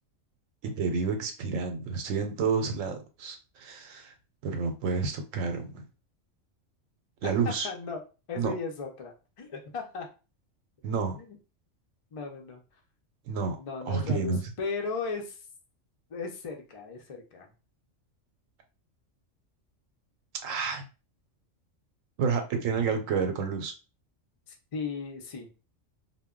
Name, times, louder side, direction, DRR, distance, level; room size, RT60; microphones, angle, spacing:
voice 1, 0.6-4.1 4.4-5.8 7.2-7.7 8.4-8.5 10.8-11.2 13.3-13.6 13.9-14.5 20.4-20.8 22.2-23.7, right 5 dB, 85° right, 6 dB, 1.0 m, -29 dB
voice 2, 7.2-8.0 8.3-10.1 11.2-11.4 12.1-12.6 13.6-15.4 16.1-17.5 24.5-25.5, left 4 dB, 65° left, 2 dB, 0.3 m, -36 dB
2.2 x 2.1 x 3.5 m, 0.32 s
omnidirectional pair, 1.3 m